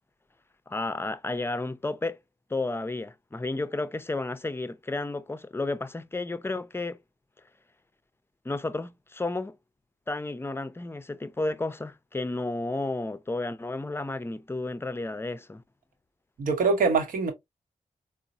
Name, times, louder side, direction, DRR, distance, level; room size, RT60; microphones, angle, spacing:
voice 1, 0.7-2.2 2.5-7.0 8.4-9.6 10.1-15.6, left 2 dB, 15° left, 0.4 m, -32 dB
voice 2, 16.4-17.3, right 4 dB, 75° right, 0.9 m, -23 dB
3.7 x 2.0 x 2.6 m
supercardioid pair, 40°, 14 cm